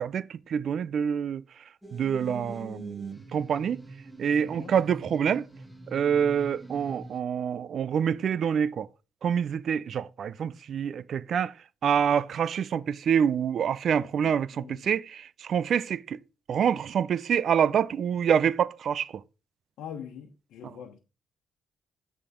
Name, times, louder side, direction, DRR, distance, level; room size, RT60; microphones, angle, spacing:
voice 1, 0.0-1.4 1.9-3.8 4.2-5.4 5.9-8.9 9.2-11.5 11.8-16.2 16.5-19.2, right 8 dB, 60° right, 0.4 m, -26 dB
sound 1, 1.8-7.2, right 1 dB, ahead, 1.7 m, -44 dB
voice 2, 4.4-4.7 13.9-14.9 19.8-21.0, left 8 dB, 85° left, 1.1 m, -44 dB
9.1 x 3.7 x 4.9 m
cardioid pair, 90°, 0 cm